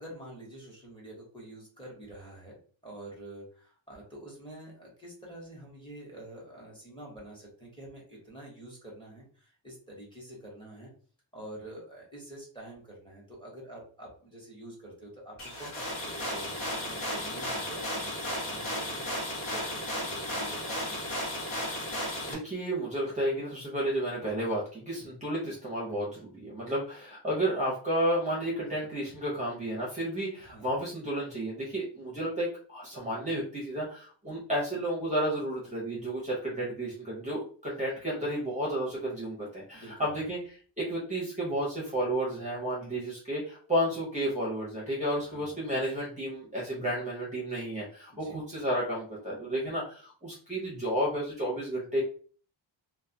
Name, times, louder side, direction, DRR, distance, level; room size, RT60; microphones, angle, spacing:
voice 1, 0.0-10.9 11.3-21.2 30.4-30.8 39.7-40.2 45.2-45.6 48.1-48.4, right 1 dB, 10° left, -3 dB, 0.8 m, -47 dB
sound 1, 15.4-22.3, left 1 dB, 80° left, 1.0 m, -34 dB
voice 2, 22.3-40.4 40.8-52.0, right 1 dB, 15° right, -5 dB, 0.5 m, -32 dB
2.2 x 2.2 x 2.6 m, 0.43 s
wide cardioid pair, 165°, 47 cm